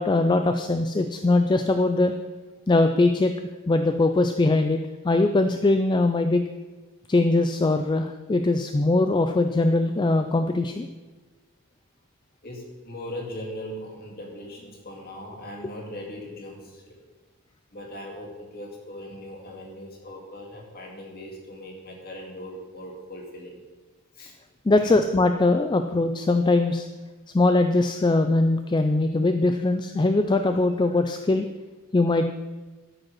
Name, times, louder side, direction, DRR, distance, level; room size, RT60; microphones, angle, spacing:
voice 1, 0.0-2.1 2.7-3.3 3.7-6.5 7.1-10.9 24.7-26.9 27.3-31.5 31.9-32.2, left 2 dB, 20° left, 7 dB, 0.3 m, -21 dB
voice 2, 12.4-17.0 17.7-23.6 24.1-24.3 24.8-24.9, left 1 dB, 45° left, 0 dB, 2.2 m, -39 dB
12.5 x 5.3 x 6.0 m, 1.2 s
head